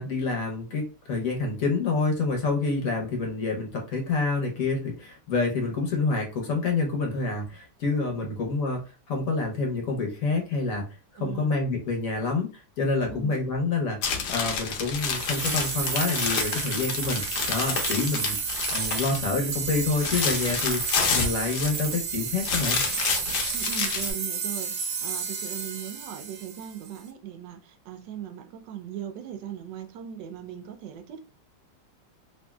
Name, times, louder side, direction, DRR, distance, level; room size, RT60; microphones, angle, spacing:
voice 1, 0.0-8.8 9.1-10.8 11.2-17.2 17.5-18.3 18.7-22.8, left 3 dB, 60° left, 1.1 m, -27 dB
voice 2, 11.2-11.5 13.1-13.3 18.0-18.2 23.5-31.2, right 9 dB, 85° right, 1.2 m, -39 dB
sound 1, 14.0-19.3 19.6-22.0 22.4-24.1, left 6 dB, 75° left, 1.2 m, -29 dB
sound 2, 15.0-27.0, right 6 dB, 65° right, 1.0 m, -32 dB
3.1 x 2.6 x 2.2 m
omnidirectional pair, 1.9 m